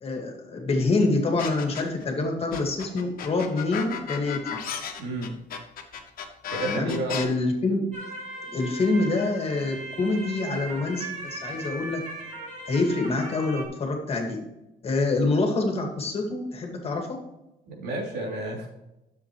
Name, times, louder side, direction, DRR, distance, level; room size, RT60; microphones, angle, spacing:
voice 1, 0.0-4.4 6.6-7.9 8.5-12.0 12.7-14.4 14.8-17.2, left 3 dB, 35° left, 2 dB, 2.0 m, -26 dB
sound 1, 1.4-2.0 2.5-7.2, left 7 dB, 60° left, 1.4 m, -34 dB
voice 2, 5.0-5.3 6.5-7.2 17.8-18.7, right 2 dB, 75° right, -2 dB, 3.1 m, -31 dB
sound 2, 7.9-13.7, right 2 dB, 45° right, 2.6 m, -38 dB
9.9 x 7.2 x 3.2 m, 0.94 s
cardioid pair, 110°, 17 cm